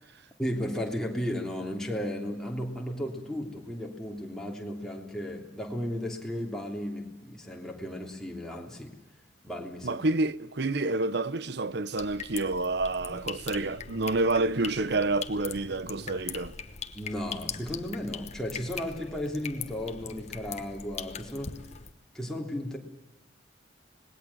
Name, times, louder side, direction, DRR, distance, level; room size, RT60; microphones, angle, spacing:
voice 1, 0.4-9.0 9.4-10.0 16.9-21.6 22.1-22.8, equal, 5° left, 3.2 m, -34 dB
voice 2, 9.8-16.5, right 2 dB, 60° right, 0.8 m, -28 dB
sound 1, 12.0-21.9, left 6 dB, 35° left, 1.2 m, -41 dB
26.5 x 20.0 x 7.3 m
head